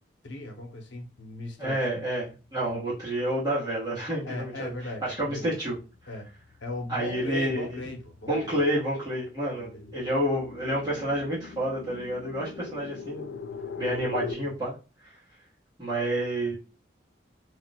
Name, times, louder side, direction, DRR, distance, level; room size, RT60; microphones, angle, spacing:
voice 1, 0.2-2.0 2.6-2.8 4.2-5.6 6.1-6.3 6.6-8.6 9.5-9.9 14.4-14.6, left 2 dB, 85° left, 0.8 m, -38 dB
voice 2, 1.6-4.7 5.0-5.8 6.9-7.8 8.3-13.3 13.8-14.7 15.8-16.6, right 1 dB, 20° right, 0.9 m, -29 dB
sound 1, 5.9-14.3, left 5 dB, 60° left, 0.3 m, -41 dB
2.3 x 2.2 x 4.0 m
head